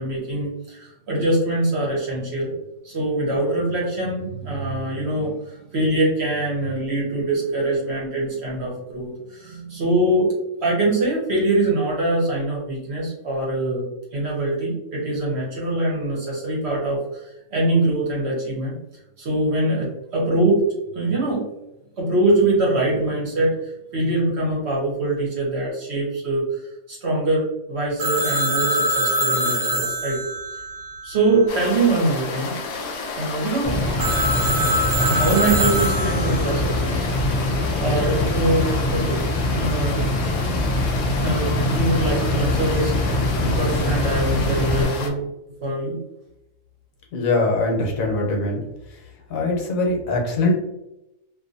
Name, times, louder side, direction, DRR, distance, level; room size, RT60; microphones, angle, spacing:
voice 1, 0.0-2.5 2.8-10.3 10.6-18.8 19.2-20.6 20.9-21.4 22.0-30.2 31.0-32.5 33.2-33.8 34.9-37.1 37.8-40.0 41.2-45.2 45.6-46.0, right 2 dB, 55° right, -4 dB, 1.0 m, -23 dB
Telephone, 28.0-31.6 34.0-36.5, right 1 dB, 85° right, 1.1 m, -24 dB
sound 1, 31.5-45.1, left 4 dB, 65° left, 0.7 m, -31 dB
sound 2, 33.6-44.8, left 1 dB, 20° left, 0.7 m, -23 dB
voice 2, 47.1-48.6 49.3-50.5, left 2 dB, 80° left, 0 dB, 1.2 m, -22 dB
2.6 x 2.5 x 2.6 m, 0.91 s
omnidirectional pair, 1.4 m